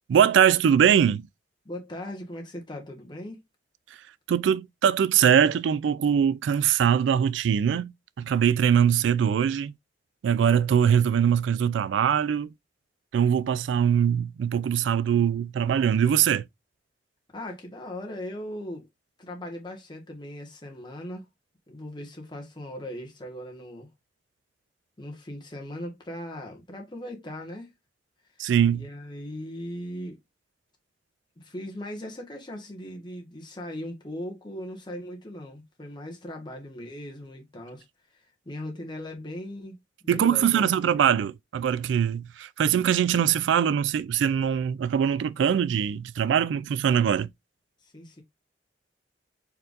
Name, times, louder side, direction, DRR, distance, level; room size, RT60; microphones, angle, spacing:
voice 1, 0.1-1.3 4.3-7.9 8.2-9.7 10.2-12.5 13.1-16.4 28.4-28.9 40.1-47.3, right 8 dB, 80° right, 0.3 m, -22 dB
voice 2, 1.6-3.4 17.3-18.9 19.2-21.2 21.7-23.9 25.0-27.7 28.7-30.2 31.4-37.8 38.4-39.8 40.0-40.9 47.9-48.2, left 1 dB, 25° left, 1.3 m, -38 dB
4.5 x 3.8 x 2.4 m
head